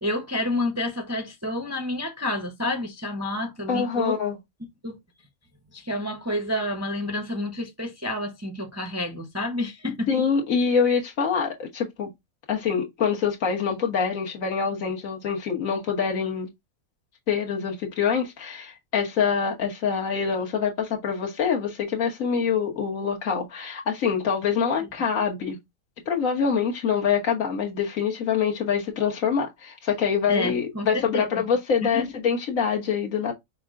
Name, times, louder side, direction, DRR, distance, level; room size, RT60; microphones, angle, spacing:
voice 1, 0.0-4.2 4.8-5.0 5.7-10.1 30.3-31.4 31.8-32.1, left 1 dB, 15° right, 0.6 m, -29 dB
voice 2, 3.7-4.4 10.1-12.1 12.5-16.5 17.3-25.6 26.0-33.3, left 6 dB, 65° left, 1.6 m, -25 dB
5.7 x 2.3 x 3.6 m
omnidirectional pair, 1.5 m